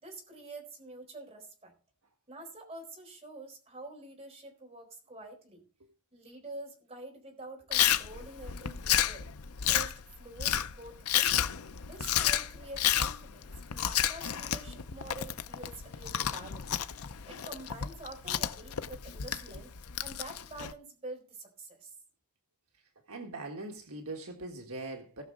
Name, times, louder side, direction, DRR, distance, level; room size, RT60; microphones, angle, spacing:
voice 1, 0.0-1.7 2.3-5.6 6.1-9.3 9.7-11.4 11.9-19.7 20.0-21.9, right 2 dB, 30° right, 2 dB, 4.1 m, -47 dB
Chewing mastication, 7.7-20.7, left 10 dB, 75° left, 0.7 m, -31 dB
voice 2, 23.1-25.2, right 2 dB, 70° right, 3 dB, 1.6 m, -41 dB
18.5 x 6.2 x 3.8 m, 0.40 s
head